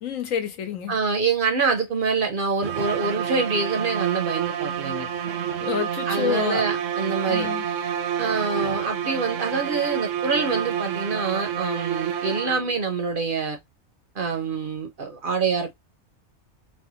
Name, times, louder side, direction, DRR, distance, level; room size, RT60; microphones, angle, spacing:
voice 1, 0.0-1.0 5.6-6.6 7.3-7.6, left 7 dB, 85° left, 1.2 m, -28 dB
voice 2, 0.9-5.1 6.1-7.5 8.2-13.6 14.2-15.7, right 4 dB, 55° right, 0.6 m, -25 dB
sound 1, 2.6-12.9, right 9 dB, 75° right, 0.9 m, -29 dB
4.0 x 2.2 x 2.8 m
omnidirectional pair, 1.4 m